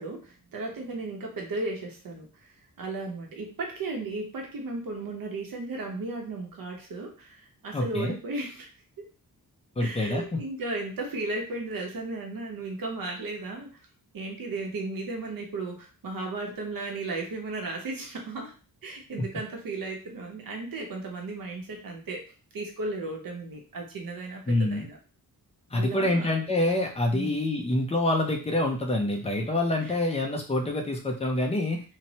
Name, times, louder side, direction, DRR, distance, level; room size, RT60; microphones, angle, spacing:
voice 1, 0.0-2.5 2.8-8.7 9.0-9.1 9.8-13.8 14.1-18.5 18.8-22.2 22.5-25.0 25.7-26.3 27.1-27.4 29.4-29.5 29.8-29.9, right 2 dB, 65° right, 1 dB, 0.7 m, -35 dB
voice 2, 7.7-8.2 9.8-10.2 19.2-19.3 24.5-24.9 25.7-31.8, left 1 dB, 20° left, 1 dB, 0.4 m, -26 dB
3.0 x 2.0 x 2.7 m, 0.37 s
wide cardioid pair, 180°, 37 cm